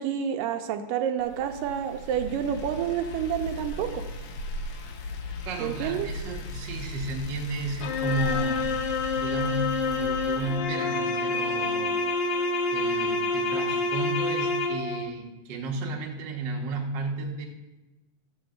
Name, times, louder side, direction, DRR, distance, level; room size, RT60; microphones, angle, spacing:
voice 1, 0.0-4.0 5.6-6.1, right 9 dB, 85° right, 6 dB, 2.2 m, -29 dB
sound 1, 1.2-10.6, left 2 dB, 90° left, 1.2 m, -37 dB
voice 2, 5.4-8.7 9.1-12.0 12.7-17.4, right 3 dB, 55° right, -1 dB, 1.3 m, -33 dB
sound 2, 7.8-15.1, left 3 dB, 70° left, 2.0 m, -27 dB
13.0 x 4.4 x 7.8 m, 1.1 s
omnidirectional pair, 4.0 m